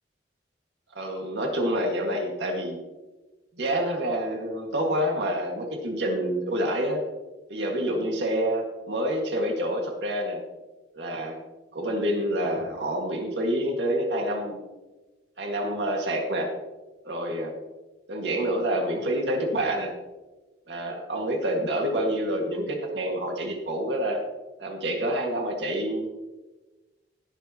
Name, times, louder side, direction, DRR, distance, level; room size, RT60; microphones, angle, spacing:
voice 1, 1.0-2.8 3.6-7.0 7.5-10.4 10.9-11.4 11.7-14.6 15.4-16.5 17.0-17.5 18.1-19.9 20.7-24.2 24.6-26.1, right 1 dB, 75° right, 1 dB, 1.8 m, -27 dB
18.5 x 6.7 x 2.9 m, 1.2 s
head